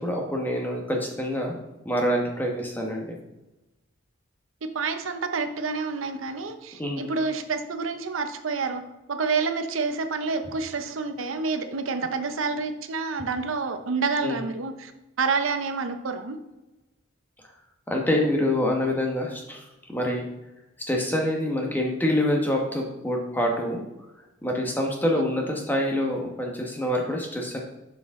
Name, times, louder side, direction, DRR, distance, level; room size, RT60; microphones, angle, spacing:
voice 1, 0.0-1.5 1.8-3.2 6.8-7.1 14.2-14.4 17.9-19.6 19.9-20.2 20.8-23.8 24.4-27.6, left 1 dB, 10° left, 0 dB, 1.1 m, -26 dB
voice 2, 4.7-8.8 9.1-14.9 15.2-16.4, right 4 dB, 85° right, 8 dB, 0.7 m, -28 dB
6.9 x 6.1 x 3.6 m, 1.0 s
head